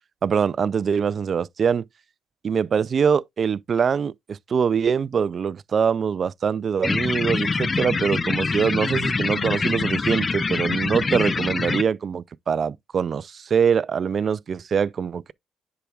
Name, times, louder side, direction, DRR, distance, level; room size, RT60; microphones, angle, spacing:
voice 1, 0.2-1.8 2.4-15.3, right 6 dB, 50° right, 0.4 m, -23 dB
sound 1, 6.8-11.8, left 4 dB, 30° left, 0.4 m, -25 dB
10.0 x 4.8 x 2.4 m
cardioid pair, 90°, 0 cm